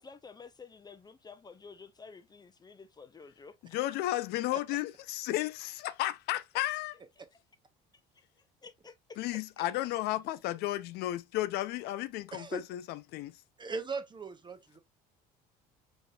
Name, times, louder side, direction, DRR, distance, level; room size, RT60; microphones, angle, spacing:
voice 1, 0.0-3.8 7.2-7.4 8.1-9.7, left 5 dB, 25° left, 0.6 m, -52 dB
voice 2, 3.7-7.0 9.2-13.3, left 15 dB, 70° left, 0.5 m, -33 dB
voice 3, 12.3-12.6 13.6-14.8, right 4 dB, 25° right, 0.9 m, -38 dB
4.0 x 3.6 x 2.4 m
supercardioid pair, 80°, 18 cm